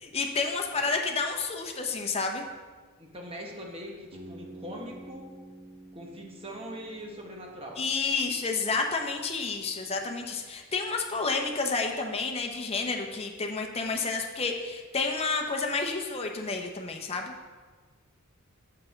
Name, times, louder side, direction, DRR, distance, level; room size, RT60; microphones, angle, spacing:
voice 1, 0.1-2.5 7.8-17.3, left 4 dB, 30° left, 2 dB, 0.7 m, -30 dB
voice 2, 3.0-5.3 5.9-7.8, equal, 25° right, 0 dB, 1.1 m, -41 dB
Bass guitar, 4.1-8.2, right 1 dB, 75° right, 1.4 m, -49 dB
6.9 x 5.9 x 4.5 m, 1.4 s
head